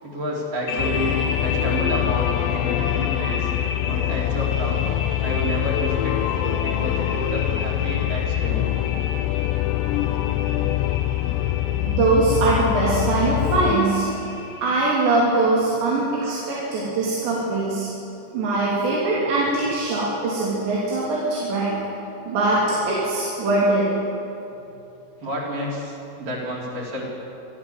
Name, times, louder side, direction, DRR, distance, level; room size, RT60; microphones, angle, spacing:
voice 1, 0.0-3.5 3.9-4.9 5.2-8.7 25.2-27.0, equal, 50° right, -4 dB, 5.4 m, -30 dB
sound 1, 0.7-15.2, left 4 dB, 60° left, 1.9 m, -33 dB
sound 2, 0.8-13.8, left 14 dB, 85° left, 2.9 m, -24 dB
voice 2, 11.9-14.1 14.6-17.9 18.3-21.7 22.3-24.0, right 2 dB, 85° right, -6 dB, 5.3 m, -22 dB
25.5 x 13.5 x 7.5 m, 2.9 s
omnidirectional pair, 4.9 m